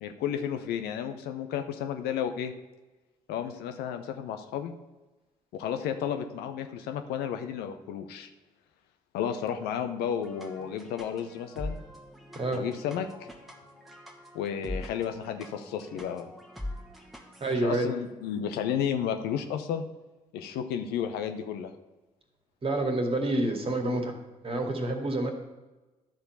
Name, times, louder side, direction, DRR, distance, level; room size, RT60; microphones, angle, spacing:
voice 1, 0.0-2.5 3.3-4.7 5.5-8.3 9.1-11.8 12.5-13.3 14.3-16.3 17.5-19.8 20.3-21.7, left 8 dB, 60° left, 7 dB, 0.8 m, -32 dB
sound 1, 10.1-17.5, left 1 dB, ahead, 1.8 m, -43 dB
voice 2, 17.4-17.9 22.6-24.2 24.4-25.3, right 2 dB, 30° right, 3 dB, 2.1 m, -28 dB
12.0 x 4.5 x 6.8 m, 1.1 s
figure-of-eight pair, 45°, 18 cm